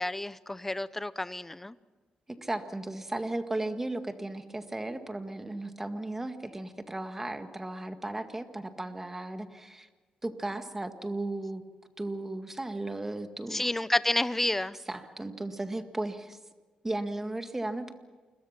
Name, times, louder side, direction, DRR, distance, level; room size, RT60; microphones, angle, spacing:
voice 1, 0.0-1.7 13.5-14.8, left 1 dB, 10° left, 16 dB, 0.8 m, -30 dB
voice 2, 2.3-9.9 10.2-11.6 12.0-13.7 14.9-16.4 16.8-17.9, right 2 dB, 15° right, 7 dB, 1.9 m, -35 dB
28.5 x 22.0 x 5.9 m, 1.4 s
cardioid pair, 105°, 2 cm